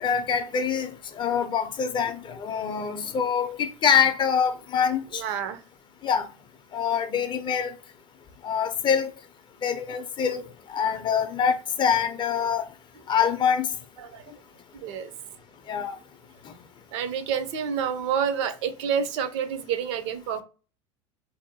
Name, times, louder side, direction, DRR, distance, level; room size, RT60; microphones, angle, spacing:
voice 1, 0.0-5.2 6.0-6.3 6.7-7.7 8.4-9.1 9.6-10.4 10.7-12.7 13.1-13.7 15.7-15.9, left 7 dB, 30° left, 0.4 m, -25 dB
voice 2, 5.1-5.6 14.0-14.2 14.7-15.1 16.9-20.4, right 7 dB, 65° right, 0.5 m, -28 dB
2.6 x 2.1 x 2.7 m
hypercardioid pair, 90°, 16 cm